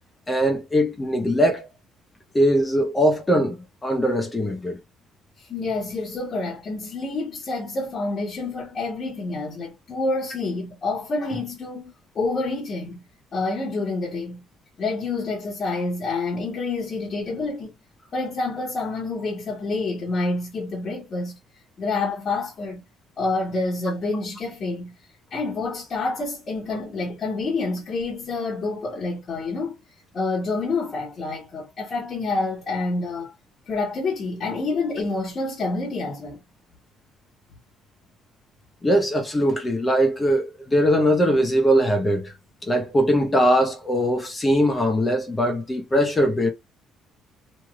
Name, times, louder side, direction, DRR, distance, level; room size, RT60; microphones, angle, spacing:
voice 1, 0.3-1.7 2.3-4.8 38.8-42.3 42.6-46.5, equal, 15° left, 0.8 m, -21 dB
voice 2, 5.4-13.0 13.3-14.4 14.8-17.7 18.1-21.4 21.8-22.8 23.2-24.9 25.3-29.8 30.1-33.3 33.7-36.4, left 3 dB, 35° left, 1.2 m, -28 dB
3.1 x 2.8 x 2.4 m
cardioid pair, 150°, 0 cm